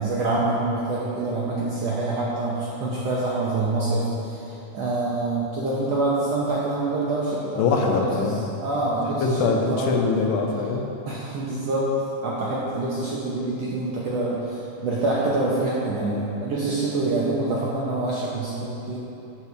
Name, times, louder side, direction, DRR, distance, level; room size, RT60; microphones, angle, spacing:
voice 1, 0.0-7.6 7.9-8.3 8.6-10.0 11.1-11.9 12.2-19.0, right 2 dB, 70° right, -6 dB, 1.6 m, -26 dB
voice 2, 7.5-8.4 9.1-10.9, left 4 dB, 80° left, 1 dB, 2.3 m, -23 dB
7.7 x 5.8 x 6.6 m, 2.9 s
omnidirectional pair, 4.0 m